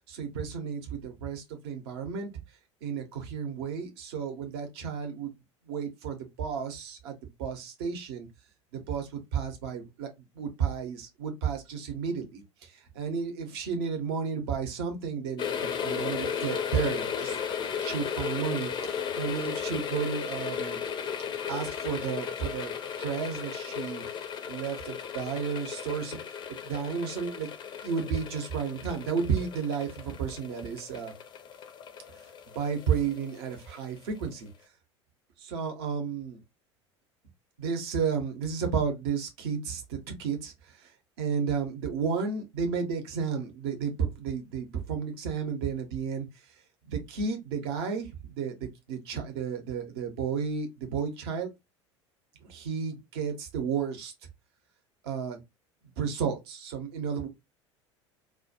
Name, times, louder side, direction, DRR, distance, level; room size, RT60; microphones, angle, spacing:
voice 1, 0.1-2.3 2.8-5.3 5.7-8.3 8.7-10.1 10.3-17.4 17.8-20.8 21.5-22.7 23.0-26.4 26.6-27.5 27.8-31.1 32.5-34.5 35.4-36.4 37.6-40.9 41.2-46.3 46.8-51.5 52.5-54.1 55.0-55.4 56.0-57.3, right 6 dB, 60° right, 0.7 m, -32 dB
sound 1, 15.4-34.0 34.3-34.4, left 7 dB, 30° left, 0.4 m, -35 dB
2.2 x 2.2 x 2.5 m
figure-of-eight pair, 70°, 15 cm